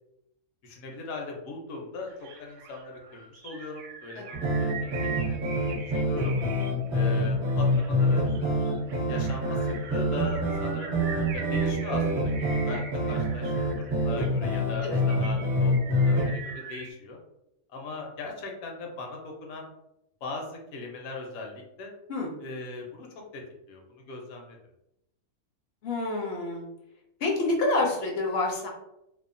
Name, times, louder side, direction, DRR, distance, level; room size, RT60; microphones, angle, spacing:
voice 1, 0.6-6.4 6.9-8.3 9.1-9.6 9.9-11.0 11.3-15.8 16.1-17.2 17.7-19.7 20.2-21.9 22.4-23.1 23.3-23.8 24.1-24.6, left 3 dB, 80° left, 1 dB, 1.1 m, -39 dB
sound 1, 2.1-16.9, right 5 dB, 75° right, 0.9 m, -43 dB
sound 2, 4.3-16.3, equal, 45° right, 0.7 m, -26 dB
voice 2, 25.8-26.7 27.2-28.7, left 2 dB, 60° left, 0 dB, 0.7 m, -28 dB
2.8 x 2.0 x 2.5 m, 0.84 s
omnidirectional pair, 1.5 m